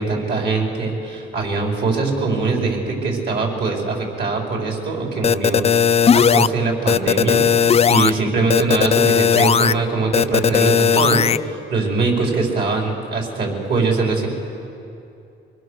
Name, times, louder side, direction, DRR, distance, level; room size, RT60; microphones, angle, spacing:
voice 1, 0.0-5.6 6.1-7.4 7.9-14.3, right 3 dB, 60° right, 0 dB, 4.8 m, -22 dB
sound 1, 5.2-6.5 6.9-8.1 8.5-9.7 10.1-11.4, left 7 dB, 30° left, 0.4 m, -16 dB
24.5 x 21.0 x 6.6 m, 2.6 s
cardioid pair, 90°, 20 cm